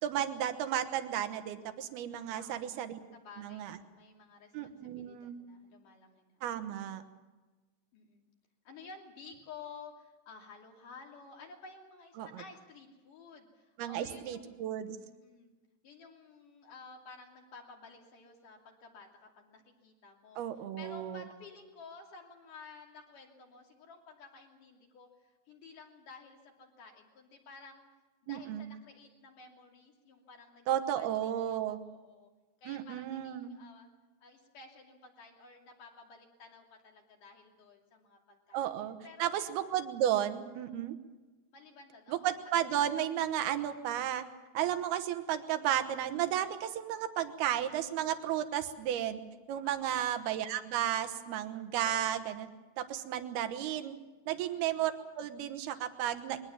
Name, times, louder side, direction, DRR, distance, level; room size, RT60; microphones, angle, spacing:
voice 1, 0.0-3.0 3.4-3.8 4.5-5.4 6.4-7.0 12.2-12.4 13.8-15.0 20.4-21.2 28.3-28.7 30.7-31.8 32.7-33.5 38.5-40.9 42.1-44.2 44.5-49.2 49.5-52.5 52.8-54.0 54.3-56.4, right 11 dB, 70° right, 9 dB, 2.9 m, -33 dB
voice 2, 2.3-2.8 3.1-6.8 7.9-8.2 8.6-14.6 15.0-15.5 15.8-19.1 19.4-20.4 20.8-27.9 28.2-32.3 32.6-33.9 34.2-39.6 41.5-42.3 49.6-50.0 54.4-54.7, left 4 dB, 50° left, 1 dB, 4.0 m, -53 dB
22.5 x 19.0 x 7.3 m, 1.2 s
omnidirectional pair, 5.1 m